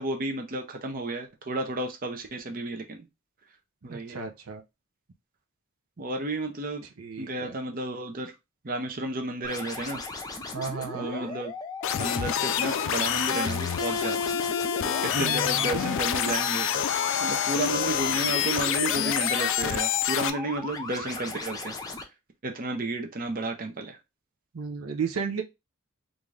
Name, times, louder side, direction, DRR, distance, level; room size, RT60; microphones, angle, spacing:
voice 1, 0.0-3.0 3.8-4.2 6.0-6.8 7.2-8.3 8.6-10.0 10.9-11.5 12.0-14.2 14.6-16.8 17.2-21.7 22.4-24.0, right 2 dB, 40° right, 0.7 m, -32 dB
voice 2, 3.9-4.6 7.0-7.6 10.5-11.3 15.1-15.7 24.5-25.4, right 5 dB, 80° right, 0.6 m, -34 dB
sound 1, 9.4-22.0, left 3 dB, 20° left, 0.6 m, -38 dB
sound 2, 11.8-20.3, left 9 dB, 60° left, 0.4 m, -27 dB
3.7 x 2.6 x 3.2 m
head